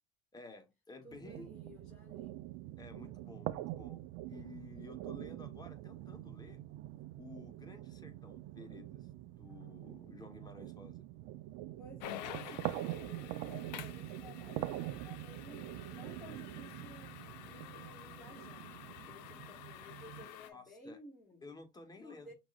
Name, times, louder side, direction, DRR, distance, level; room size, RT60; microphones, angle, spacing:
voice 1, 0.3-1.5 2.8-6.6 7.2-9.1 9.4-11.1 20.5-21.0 21.4-22.3, left 3 dB, 20° left, 1.4 m, -53 dB
voice 2, 1.0-2.4 11.8-17.1 17.5-21.4 22.0-22.3, left 2 dB, ahead, 3.1 m, -55 dB
sound 1, 1.1-20.3, right 15 dB, 65° right, 0.5 m, -45 dB
sound 2, 12.0-20.5, left 12 dB, 80° left, 0.7 m, -50 dB
5.9 x 3.2 x 2.5 m
hypercardioid pair, 90°, 21 cm